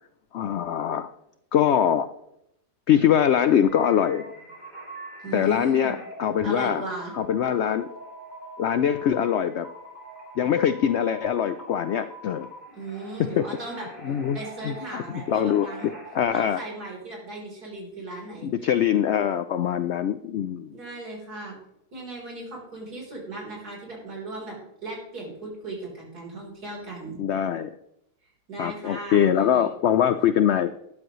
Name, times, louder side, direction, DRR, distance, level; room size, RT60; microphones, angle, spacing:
voice 1, 0.3-1.1 1.5-2.1 2.9-4.3 5.3-6.8 7.1-7.9 8.6-9.7 10.4-12.5 13.2-13.5 14.0-14.4 14.6-16.6 18.4-20.7 27.2-27.7 28.6-30.7, left 9 dB, 80° left, 11 dB, 0.6 m, -23 dB
sound 1, 3.6-16.2, right 1 dB, 25° right, 4.0 m, -43 dB
voice 2, 5.2-5.9 6.4-7.1 12.7-15.9 16.3-18.5 20.7-21.6 21.9-27.2 28.5-29.7, right 2 dB, 75° right, -2 dB, 4.4 m, -37 dB
12.5 x 10.5 x 3.1 m, 0.80 s
omnidirectional pair, 1.7 m